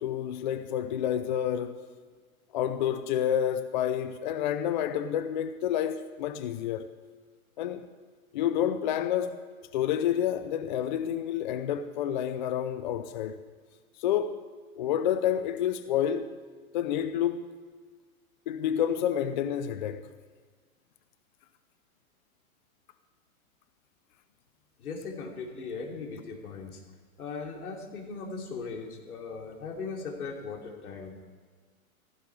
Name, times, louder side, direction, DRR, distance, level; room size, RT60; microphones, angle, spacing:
voice 1, 0.0-1.8 2.5-6.9 7.6-7.9 8.3-9.4 9.7-13.4 14.0-14.4 14.8-16.4 16.7-17.5 18.5-20.0, left 10 dB, 35° left, 0.6 m, -29 dB
voice 2, 24.8-26.8 27.2-31.3, left 4 dB, 80° left, 3.4 m, -38 dB
15.5 x 15.5 x 4.8 m
hypercardioid pair, 155°, 43 cm